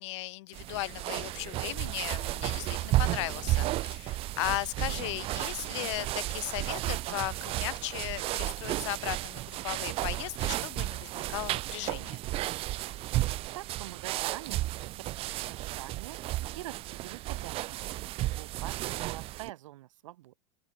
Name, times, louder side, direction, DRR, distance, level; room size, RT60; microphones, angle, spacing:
voice 1, 0.0-12.2, left 20 dB, 65° left, 0.8 m, -37 dB
sound 1, 0.5-19.5, right 17 dB, 35° right, 0.7 m, -33 dB
voice 2, 13.5-16.2 16.5-20.4, right 15 dB, 75° right, 2.4 m, -45 dB
open air
supercardioid pair, 130°, 16 cm